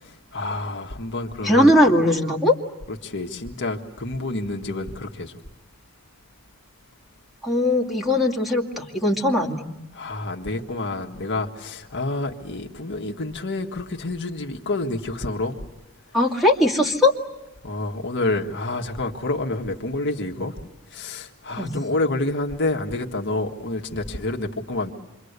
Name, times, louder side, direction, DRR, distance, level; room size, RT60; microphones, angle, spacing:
voice 1, 0.0-1.8 2.9-5.4 9.9-15.6 17.6-20.6 20.9-24.9, left 2 dB, 55° left, 2 dB, 1.6 m, -28 dB
voice 2, 1.4-2.5 7.4-9.6 16.1-17.1 21.6-21.8, left 1 dB, ahead, 0 dB, 2.3 m, -19 dB
27.5 x 24.0 x 8.1 m, 0.99 s
head